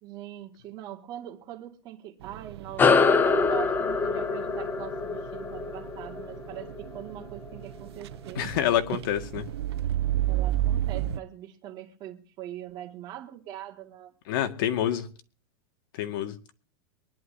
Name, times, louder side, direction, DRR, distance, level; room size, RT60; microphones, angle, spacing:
voice 1, 0.0-8.5 10.3-14.1 14.8-15.0, right 11 dB, 30° right, 2.1 m, -41 dB
sound 1, 2.2-11.2, right 12 dB, 85° right, 0.7 m, -33 dB
sound 2, 2.8-7.6, left 5 dB, 15° left, 0.8 m, -25 dB
voice 2, 8.4-9.5 14.3-15.1 16.0-16.3, left 11 dB, 55° left, 1.9 m, -27 dB
23.5 x 11.0 x 2.8 m
supercardioid pair, 160°, 13 cm